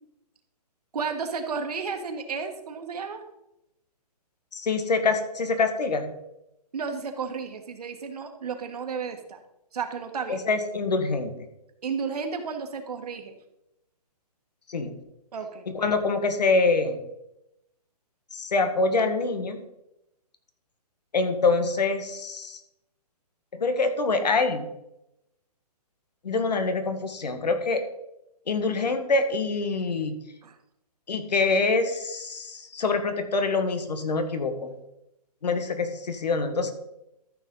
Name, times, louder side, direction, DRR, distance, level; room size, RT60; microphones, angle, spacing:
voice 1, 0.9-3.2 6.7-9.4 9.7-10.4 11.8-13.4 15.3-15.7 30.4-30.6, right 5 dB, 70° right, 5 dB, 1.7 m, -32 dB
voice 2, 4.5-6.1 10.3-11.3 14.7-14.9 15.7-17.0 18.3-19.6 21.1-22.6 23.5-24.7 26.2-27.8 28.5-30.2 31.1-34.8 35.4-36.7, left 3 dB, 90° left, 8 dB, 1.7 m, -25 dB
13.5 x 6.3 x 3.9 m, 0.86 s
hypercardioid pair, 165°, 20 cm